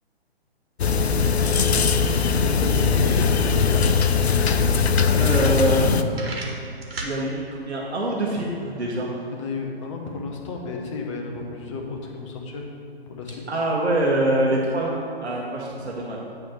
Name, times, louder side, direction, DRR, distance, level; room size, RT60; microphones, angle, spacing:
sound 1, 0.8-6.0, left 5 dB, 75° left, 0.5 m, -20 dB
voice 1, 2.3-4.0 5.0-5.4 5.8-6.2 9.3-12.7 13.1-13.4, left 4 dB, 30° left, 1 dB, 0.9 m, -32 dB
sound 2, 5.2-5.8 6.1-7.2, right 3 dB, 65° right, 1.6 m, -35 dB
voice 2, 5.2-5.9 7.0-9.2 13.5-16.2, right 1 dB, 80° right, -3 dB, 1.3 m, -24 dB
9.2 x 3.3 x 6.4 m, 2.5 s
figure-of-eight pair, 135°, 32 cm